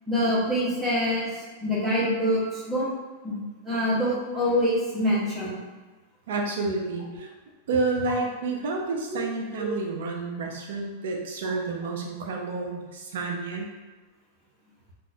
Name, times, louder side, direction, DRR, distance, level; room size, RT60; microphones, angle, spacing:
voice 1, 0.1-2.9 3.2-3.4 3.6-5.6 9.6-9.7, equal, 10° right, -7 dB, 0.8 m, -25 dB
voice 2, 6.3-7.3 7.7-13.7, right 3 dB, 70° right, 1 dB, 0.6 m, -30 dB
2.5 x 2.3 x 4.1 m, 1.3 s
supercardioid pair, 165°, 0 cm